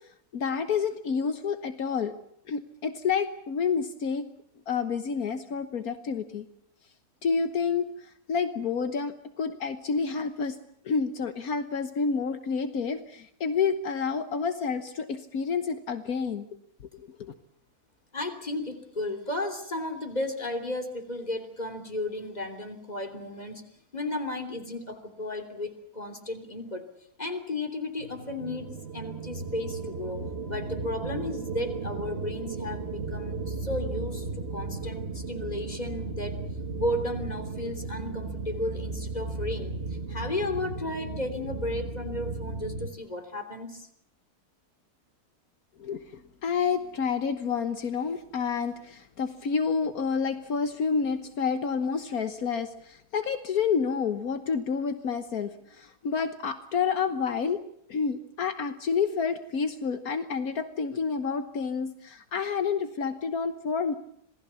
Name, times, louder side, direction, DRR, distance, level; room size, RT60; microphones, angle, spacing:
voice 1, 0.3-2.1 2.5-4.3 4.7-6.5 7.2-10.6 10.8-16.5 16.9-17.3 45.8-57.6 57.9-63.9, left 5 dB, 75° left, 9 dB, 1.6 m, -29 dB
voice 2, 18.1-23.6 23.9-26.9 27.2-34.3 34.5-36.3 36.7-39.7 40.1-43.9, left 1 dB, 25° left, 7 dB, 3.4 m, -34 dB
sound 1, 28.0-42.9, right 3 dB, 45° right, 1.6 m, -35 dB
27.0 x 19.5 x 7.1 m, 0.70 s
omnidirectional pair, 1.6 m